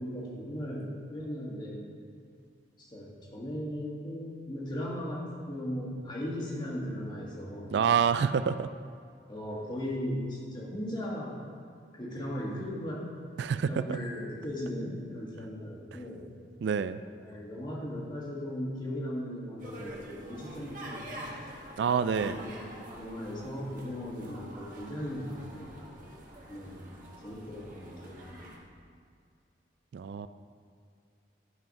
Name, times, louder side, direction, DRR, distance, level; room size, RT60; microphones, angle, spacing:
voice 1, 0.0-1.8 2.8-7.9 9.3-11.4 11.9-13.0 13.6-16.3 17.2-21.3 22.1-25.8 26.5-26.9 27.2-28.5, equal, 25° left, -3 dB, 1.7 m, -37 dB
voice 2, 7.7-8.7 13.4-14.0 16.6-17.0 21.8-22.4 29.9-30.3, right 7 dB, 70° right, 12 dB, 0.3 m, -27 dB
sound 1, 19.6-28.6, right 1 dB, 45° right, 1.4 m, -46 dB
12.0 x 5.6 x 5.4 m, 2.3 s
head